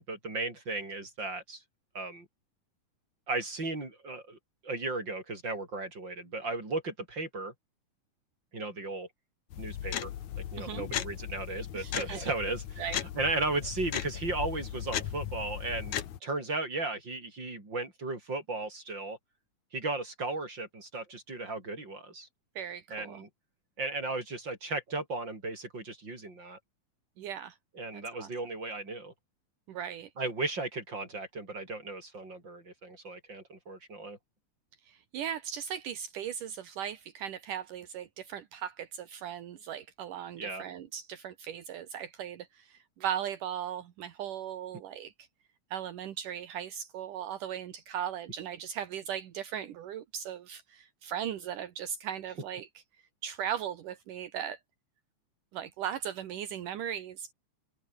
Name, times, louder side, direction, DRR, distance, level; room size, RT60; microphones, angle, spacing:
voice 1, 0.0-1.6 1.9-2.3 3.3-4.4 4.6-7.5 8.5-9.1 9.6-10.1 10.4-12.8 13.1-19.2 19.7-22.3 22.9-23.3 23.8-26.6 27.8-29.1 30.2-34.2 40.4-40.6, right 2 dB, 30° right, 7.7 m, -35 dB
sound 1, 9.5-16.2, left 11 dB, 65° left, 2.8 m, -37 dB
voice 2, 11.7-12.2 12.8-13.0 22.6-23.2 27.2-27.5 28.2-28.3 29.7-30.1 34.9-45.1 45.7-52.7 53.2-54.6 55.5-57.3, right 9 dB, 75° right, 3.1 m, -38 dB
omnidirectional pair, 3.8 m